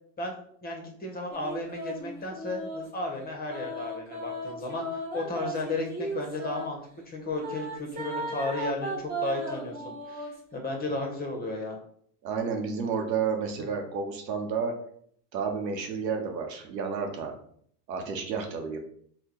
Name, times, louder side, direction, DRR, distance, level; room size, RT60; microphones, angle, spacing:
voice 1, 0.2-4.8 5.1-6.8 7.1-11.8, left 2 dB, 20° left, 1 dB, 0.8 m, -34 dB
sound 1, 1.3-2.9 3.5-6.7 7.4-10.4, right 1 dB, 20° right, 0.9 m, -36 dB
voice 2, 12.2-14.7 15.3-17.3 17.9-18.8, right 5 dB, 85° right, 3 dB, 0.8 m, -31 dB
3.5 x 2.2 x 2.9 m, 0.62 s
hypercardioid pair, 90°, 49 cm